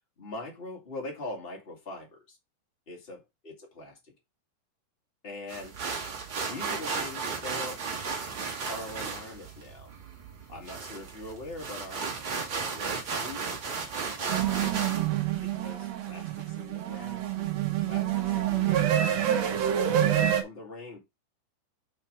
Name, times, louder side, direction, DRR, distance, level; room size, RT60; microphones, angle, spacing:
voice 1, 0.2-2.4 2.9-4.1 5.2-5.8 6.5-7.8 8.7-9.9 10.5-17.3 17.8-18.9 19.4-21.0, left 2 dB, 50° left, 0.7 m, -43 dB
sound 1, 5.5-15.1, right 5 dB, 50° right, 1.5 m, -35 dB
sound 2, 14.3-20.4, right 11 dB, 70° right, 1.6 m, -27 dB
5.9 x 4.5 x 4.7 m
omnidirectional pair, 4.5 m